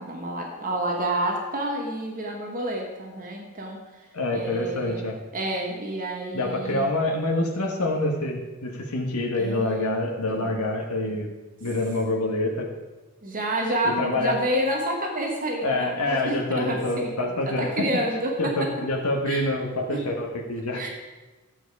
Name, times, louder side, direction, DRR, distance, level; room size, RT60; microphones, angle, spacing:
voice 1, 0.0-5.0 5.3-6.9 9.3-10.0 10.3-10.6 13.2-17.1 17.4-18.7 19.3-19.5 19.9-20.0 20.7-20.9, right 1 dB, 40° right, 1 dB, 1.5 m, -29 dB
voice 2, 4.1-5.1 6.3-11.3 11.6-12.7 14.0-14.3 15.6-17.9 18.4-20.8, left 2 dB, 90° left, 0 dB, 1.5 m, -26 dB
13.0 x 7.8 x 4.8 m, 1.2 s
head